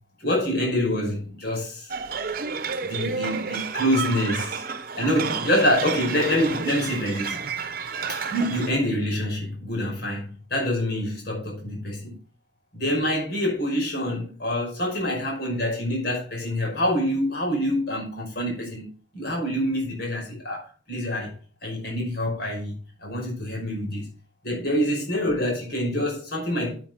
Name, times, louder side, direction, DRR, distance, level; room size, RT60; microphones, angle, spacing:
voice 1, 0.2-1.9 2.8-4.6 5.0-7.4 8.1-12.2 12.7-18.8 19.1-20.6 20.9-21.4 21.6-22.7 23.0-24.1 24.4-26.8, equal, 60° left, 5.4 m, -26 dB
sound 1, 1.9-8.7, right 5 dB, 55° right, 1.0 m, -31 dB
9.0 x 8.1 x 4.6 m
head